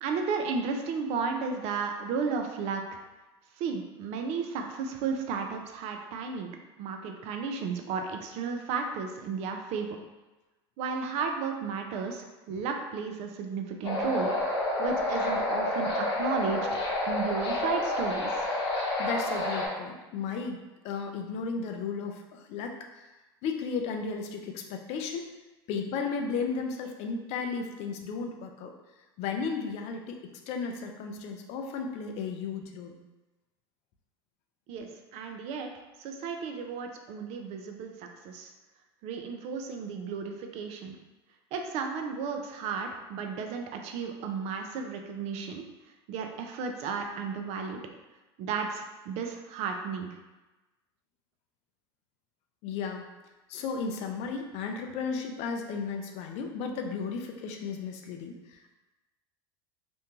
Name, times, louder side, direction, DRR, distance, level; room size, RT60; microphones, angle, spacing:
voice 1, 0.0-3.0 3.6-6.5 6.8-10.0 10.8-14.3 14.8-16.7 17.1-18.4 34.7-35.7 36.0-38.5 39.0-41.0 41.5-45.6 46.1-47.8 48.4-50.2, right 5 dB, 55° right, 4 dB, 0.4 m, -33 dB
sound 1, 13.8-19.7, left 1 dB, 85° left, 0.8 m, -29 dB
voice 2, 19.0-23.0 23.4-25.2 25.7-28.7 29.2-33.0 34.8-34.9 52.6-53.1 53.5-58.7, left 5 dB, 55° left, 3 dB, 0.4 m, -34 dB
2.6 x 2.2 x 2.9 m, 1.1 s
hypercardioid pair, 85°, 14 cm